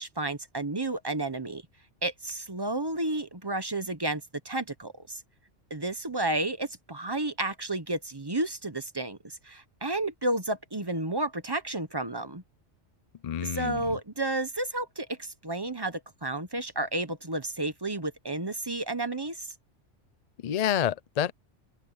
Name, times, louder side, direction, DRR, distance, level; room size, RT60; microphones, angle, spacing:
voice 1, 0.0-1.6 2.0-5.2 5.7-9.2 9.4-12.4 13.4-19.5, right 2 dB, 20° right, 1.0 m, -31 dB
voice 2, 13.2-14.0 20.4-21.3, left 9 dB, 50° left, 0.5 m, -28 dB
open air
omnidirectional pair, 1.2 m